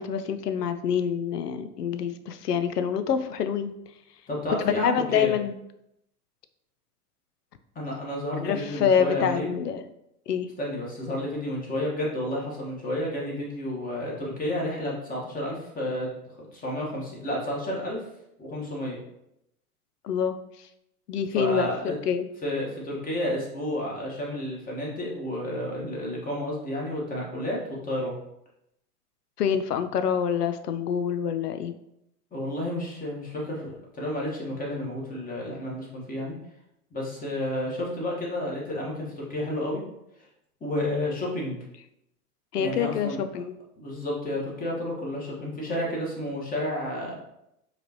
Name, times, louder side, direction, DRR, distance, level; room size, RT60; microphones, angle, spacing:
voice 1, 0.0-3.7 4.6-5.5 8.4-9.8 10.3-10.5 20.0-20.3 21.1-22.3 29.4-31.7 42.5-43.5, left 7 dB, 90° left, 10 dB, 0.5 m, -26 dB
voice 2, 4.3-5.3 7.7-9.5 10.6-16.1 16.5-18.0 18.4-19.0 21.3-22.0 22.4-28.1 32.3-36.3 36.9-39.8 40.6-41.6 42.6-43.2 43.8-47.2, left 1 dB, 20° left, -3 dB, 1.3 m, -31 dB
4.9 x 3.2 x 2.9 m, 0.81 s
hypercardioid pair, 105°, 46 cm